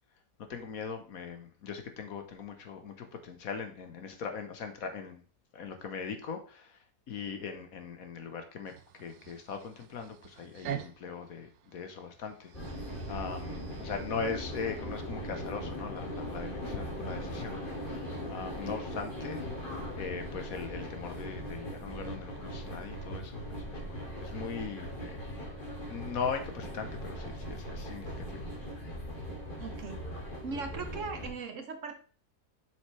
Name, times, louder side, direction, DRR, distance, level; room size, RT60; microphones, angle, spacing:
voice 1, 0.4-5.2 5.5-17.5 17.8-19.4 20.0-25.2 25.9-28.5, left 6 dB, 65° left, 6 dB, 1.4 m, -40 dB
sound 1, 8.6-15.1, right 10 dB, 85° right, 1.2 m, -46 dB
sound 2, 12.5-31.3, equal, 30° left, 2.4 m, -39 dB
voice 2, 29.6-30.0 30.4-32.0, right 4 dB, 55° right, 7 dB, 1.1 m, -39 dB
7.5 x 6.4 x 3.2 m, 0.41 s
omnidirectional pair, 1.7 m